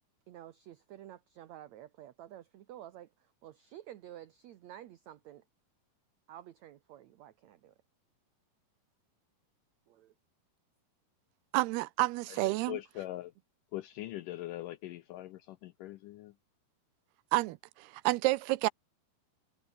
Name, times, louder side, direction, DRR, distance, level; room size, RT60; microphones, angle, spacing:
voice 1, 0.3-5.4 6.3-7.7 9.9-10.1, right 12 dB, 65° right, 1.8 m, -51 dB
voice 2, 11.5-12.8 17.3-17.6 17.8-18.7, right 20 dB, 85° right, 2.7 m, -29 dB
voice 3, 12.3-13.3 13.7-16.3, left 15 dB, 80° left, 1.9 m, -42 dB
omnidirectional pair, 4.5 m